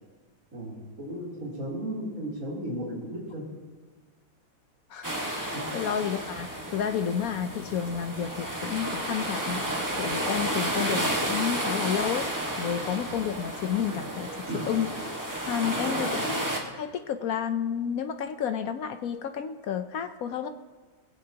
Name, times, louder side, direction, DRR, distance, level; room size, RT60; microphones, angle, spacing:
voice 1, 0.5-3.5 5.5-5.6 14.5-14.6, right 1 dB, 45° right, -5 dB, 3.9 m, -35 dB
voice 2, 4.9-9.7 10.0-12.3 12.6-14.9 15.5-16.5 16.7-20.5, left 8 dB, 65° left, 9 dB, 0.9 m, -31 dB
sound 1, 5.0-16.6, right 1 dB, 10° right, 1.4 m, -31 dB
20.5 x 16.5 x 2.9 m, 1.4 s
omnidirectional pair, 2.1 m